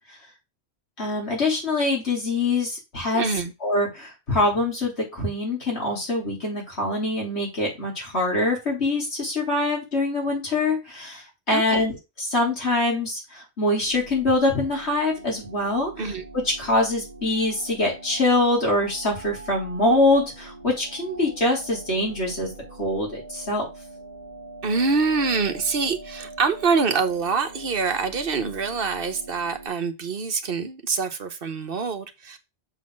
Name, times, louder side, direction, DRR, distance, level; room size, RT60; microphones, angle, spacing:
voice 1, 1.0-3.3 3.6-16.1 16.6-22.5 22.8-23.7, left 2 dB, 80° left, -2 dB, 4.1 m, -24 dB
voice 2, 3.1-3.5 11.5-11.9 16.0-16.2 24.6-32.4, right 4 dB, 60° right, 8 dB, 1.1 m, -25 dB
sound 1, 13.8-29.7, right 2 dB, 55° left, 4.0 m, -43 dB
6.8 x 4.2 x 6.3 m, 0.25 s
omnidirectional pair, 1.1 m